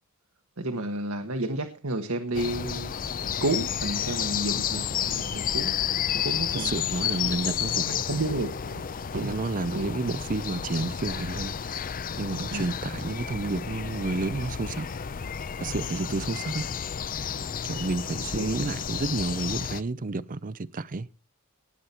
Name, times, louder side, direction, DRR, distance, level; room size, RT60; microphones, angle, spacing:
voice 1, 0.6-2.9 3.4-5.8 6.1-6.8 8.1-8.5 9.1-9.4 9.7-9.9 12.5-12.7 18.3-18.7, right 2 dB, 75° right, 1.4 m, -31 dB
sound 1, 2.3-19.8, left 8 dB, 40° left, 0.6 m, -31 dB
voice 2, 6.5-8.0 9.1-11.9 12.2-14.9 15.6-16.6 17.6-21.1, right 3 dB, 40° right, 0.6 m, -31 dB
19.0 x 8.4 x 4.3 m
head